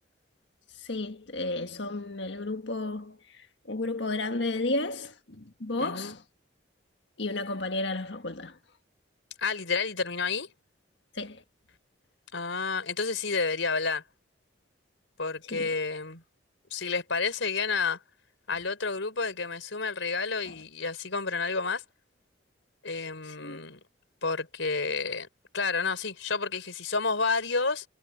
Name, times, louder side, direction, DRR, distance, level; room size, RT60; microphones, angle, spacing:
voice 1, 0.7-6.2 7.2-8.6 11.1-11.4 15.5-15.7 20.4-20.6 23.2-23.6, left 2 dB, 70° left, 1.6 m, -33 dB
voice 2, 5.8-6.1 9.4-10.5 12.3-14.0 15.2-16.2 16.7-18.0 18.5-21.8 22.8-23.8 24.2-25.3 25.5-27.9, left 4 dB, 85° left, 4.2 m, -30 dB
head